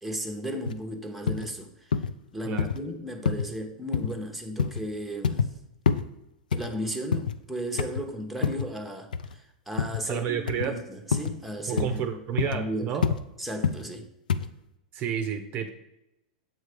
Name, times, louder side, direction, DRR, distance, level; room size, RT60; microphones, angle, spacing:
voice 1, 0.0-2.1 2.3-5.6 6.5-12.0 12.5-13.0 13.4-14.1, equal, ahead, 0.8 m, -35 dB
sound 1, 0.7-0.8 1.3-1.5 1.9-2.1 2.6-2.8 3.3-3.5 3.9-4.2 4.6-4.8 5.2-5.5 5.9-6.1 6.5-7.4 7.8-8.1 8.4-8.7 9.1-9.4 9.8-10.0 10.5-10.7 11.1-11.4 11.8-12.0 12.4-12.6 13.0-13.2 13.6-13.9 14.3-14.5, left 6 dB, 90° left, 0.4 m, -27 dB
voice 2, 10.1-10.8 11.7-13.1 14.9-15.7, right 8 dB, 40° right, 0.6 m, -30 dB
7.4 x 3.2 x 5.0 m
hypercardioid pair, 110°, 4 cm